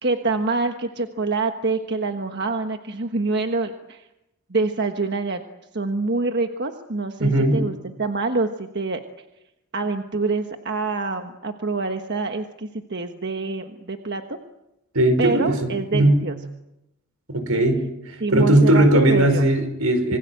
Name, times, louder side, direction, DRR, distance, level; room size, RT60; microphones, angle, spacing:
voice 1, 0.0-4.0 4.5-5.4 5.7-9.0 9.7-14.4 15.2-16.3 18.2-19.5, right 3 dB, 50° right, 5 dB, 1.4 m, -26 dB
voice 2, 7.2-7.6 14.9-16.2 17.3-17.9 18.3-20.2, right 1 dB, 80° right, 9 dB, 5.4 m, -18 dB
27.0 x 24.0 x 7.9 m, 0.90 s
head